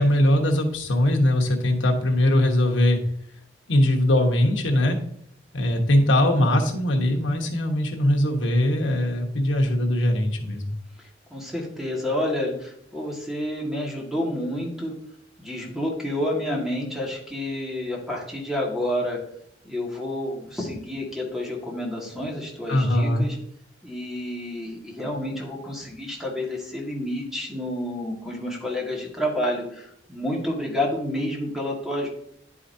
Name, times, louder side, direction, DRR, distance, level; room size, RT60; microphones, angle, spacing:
voice 1, 0.0-3.0 3.7-5.0 5.5-10.7 22.7-23.3, left 1 dB, 80° left, 2 dB, 1.2 m, -21 dB
voice 2, 11.3-14.9 15.4-19.2 19.6-23.4 23.8-32.1, left 1 dB, ahead, -2 dB, 1.6 m, -29 dB
11.0 x 4.9 x 2.7 m, 0.68 s
head